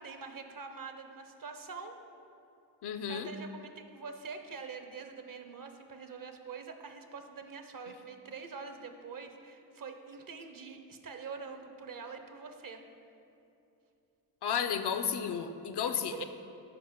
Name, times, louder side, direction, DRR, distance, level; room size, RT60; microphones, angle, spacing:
voice 1, 0.0-2.0 3.1-12.8 16.1-16.2, right 5 dB, 50° right, 7 dB, 0.8 m, -45 dB
voice 2, 2.8-3.3 14.4-16.2, left 7 dB, 65° left, 9 dB, 0.6 m, -33 dB
9.7 x 5.0 x 3.7 m, 2.7 s
cardioid pair, 55°, 44 cm